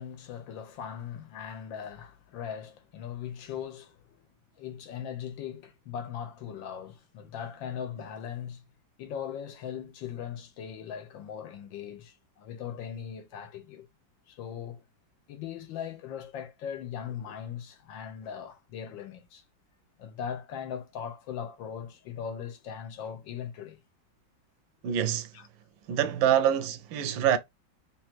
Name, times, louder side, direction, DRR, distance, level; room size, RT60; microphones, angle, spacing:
voice 1, 0.0-4.2 4.6-8.6 9.0-13.9 14.3-14.8 15.3-19.4 20.0-23.8 25.3-25.5, left 8 dB, 85° left, 1.6 m, -39 dB
voice 2, 24.8-25.3 25.9-27.4, right 10 dB, 85° right, 1.3 m, -25 dB
4.0 x 2.4 x 4.4 m
omnidirectional pair, 2.0 m